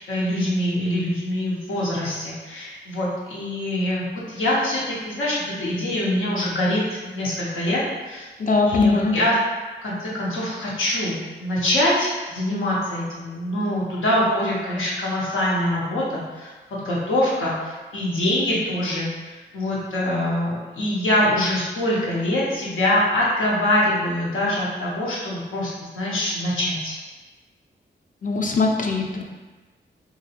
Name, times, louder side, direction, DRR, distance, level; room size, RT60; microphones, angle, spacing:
voice 1, 0.0-8.3 8.7-9.4 9.8-27.0, left 1 dB, 85° left, -6 dB, 0.8 m, -24 dB
voice 2, 8.4-9.2 28.2-29.2, left 3 dB, 40° left, 1 dB, 0.5 m, -20 dB
3.0 x 2.6 x 2.5 m, 1.3 s
supercardioid pair, 45°, 21 cm